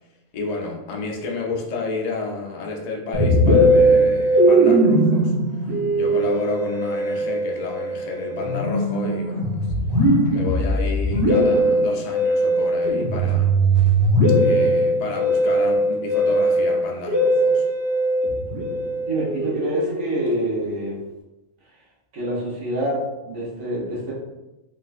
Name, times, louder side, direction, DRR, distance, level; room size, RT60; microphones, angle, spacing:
voice 1, 0.3-5.7 5.9-9.7 9.9-13.9 14.4-17.6, left 4 dB, 65° left, 0 dB, 0.4 m, -31 dB
Musical instrument, 3.1-20.7, right 1 dB, 25° right, 0.4 m, -20 dB
voice 2, 19.1-21.0 22.1-24.1, equal, 85° right, -6 dB, 1.4 m, -27 dB
3.7 x 2.3 x 2.4 m, 1.0 s
omnidirectional pair, 1.3 m